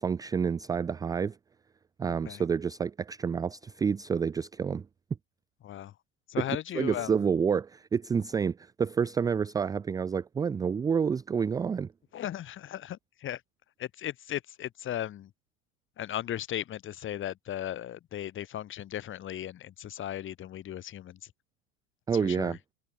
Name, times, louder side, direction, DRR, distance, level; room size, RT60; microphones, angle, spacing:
voice 1, 0.0-1.4 2.0-4.9 6.7-11.9 22.1-22.6, right 6 dB, 10° right, 0.5 m, -29 dB
voice 2, 2.1-2.4 5.6-5.9 6.3-7.1 12.1-13.4 13.8-15.3 16.0-21.3 22.1-22.6, left 11 dB, 25° left, 4.7 m, -36 dB
supercardioid pair, 165°, 44 cm